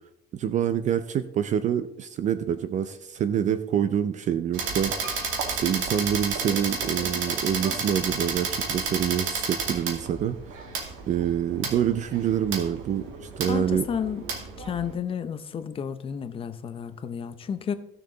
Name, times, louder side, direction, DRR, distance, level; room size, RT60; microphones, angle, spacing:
voice 1, 0.3-5.2 5.5-10.6 11.1-13.8, right 9 dB, 35° right, 12 dB, 0.4 m, -26 dB
sound 1, 4.5-14.9, right 5 dB, 85° right, 2.2 m, -31 dB
Piano, 5.0-7.0 7.6-8.3 8.7-8.8 9.0-9.1, right 4 dB, 60° right, 2.4 m, -46 dB
voice 2, 13.5-14.2 14.6-17.7, left 7 dB, 25° left, 10 dB, 0.6 m, -31 dB
15.5 x 6.6 x 3.8 m, 0.83 s
cardioid pair, 180°, 20 cm